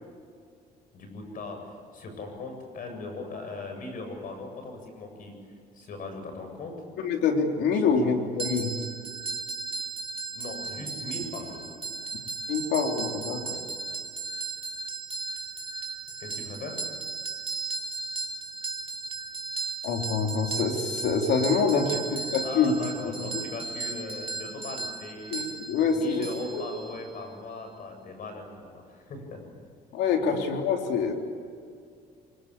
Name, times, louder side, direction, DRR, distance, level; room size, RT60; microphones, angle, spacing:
voice 1, 0.9-5.3 5.7-6.7 7.7-7.9 10.3-11.6 13.5-13.6 16.2-16.8 21.7-25.4 25.9-29.4 30.2-30.4, left 3 dB, 55° left, 5 dB, 7.9 m, -39 dB
voice 2, 7.0-8.8 12.5-13.4 19.8-21.8 22.3-22.8 23.1-23.5 25.3-26.3 29.9-31.1, left 5 dB, 80° left, 3 dB, 3.7 m, -26 dB
sound 1, 8.4-27.2, right 4 dB, 30° right, 3.0 m, -36 dB
25.0 x 23.0 x 8.5 m, 2.2 s
cardioid pair, 110°, 17 cm